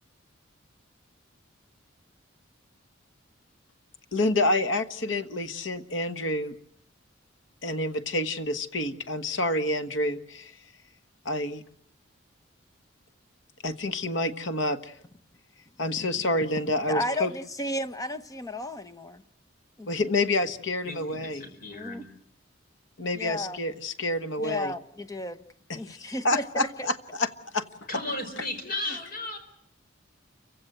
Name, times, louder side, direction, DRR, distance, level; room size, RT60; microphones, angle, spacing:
voice 1, 4.1-6.6 7.6-10.6 11.2-11.6 13.6-14.9 15.8-17.3 19.9-21.5 23.0-24.7 25.7-27.7 28.9-29.0, left 2 dB, 75° left, 1.3 m, -28 dB
voice 2, 16.9-19.2 19.8-19.9 21.7-22.0 23.1-23.6 24.4-25.4 25.7-26.9, left 1 dB, 20° left, 0.9 m, -33 dB
voice 3, 20.8-22.0 27.9-29.4, left 2 dB, 50° left, 4.7 m, -35 dB
28.5 x 16.0 x 7.9 m
head